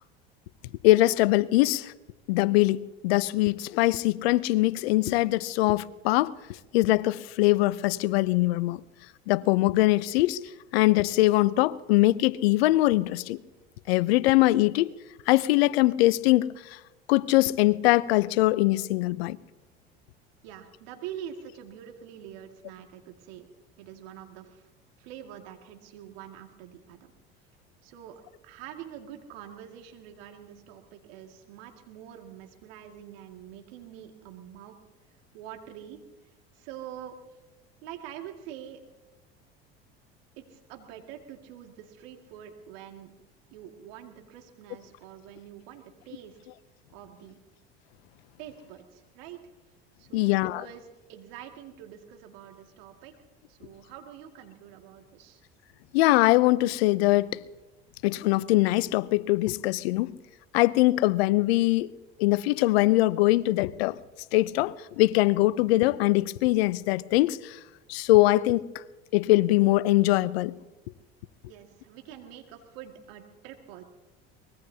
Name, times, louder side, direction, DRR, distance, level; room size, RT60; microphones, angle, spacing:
voice 1, 0.8-1.9 2.3-6.4 6.7-8.8 9.3-13.4 13.9-14.9 15.3-16.8 17.1-19.4 50.1-50.6 55.9-57.4 58.0-60.1 60.5-61.9 62.2-64.0 64.3-67.6 67.9-68.7 69.1-70.5, left 18 dB, 75° left, 0.6 m, -22 dB
voice 2, 20.4-23.5 23.8-24.7 25.0-27.1 27.8-34.8 35.3-36.0 36.3-37.2 37.8-38.8 40.4-43.1 43.5-46.4 46.9-47.4 48.4-49.4 50.0-55.4 71.5-73.8, right 10 dB, 70° right, 2.2 m, -45 dB
24.0 x 20.5 x 2.8 m
hypercardioid pair, 80°, 31 cm